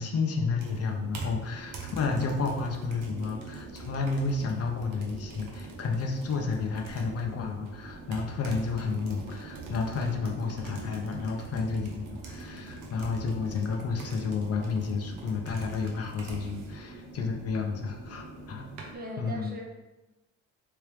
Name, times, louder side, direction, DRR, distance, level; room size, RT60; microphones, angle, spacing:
voice 1, 0.0-18.7 19.2-19.6, left 4 dB, 55° left, 2 dB, 0.6 m, -31 dB
sound 1, 0.6-19.0, right 3 dB, 85° right, 0.8 m, -43 dB
voice 2, 18.9-19.6, right 1 dB, 30° right, 0 dB, 0.9 m, -39 dB
3.4 x 3.2 x 3.1 m, 1.1 s
cardioid pair, 90°, 30 cm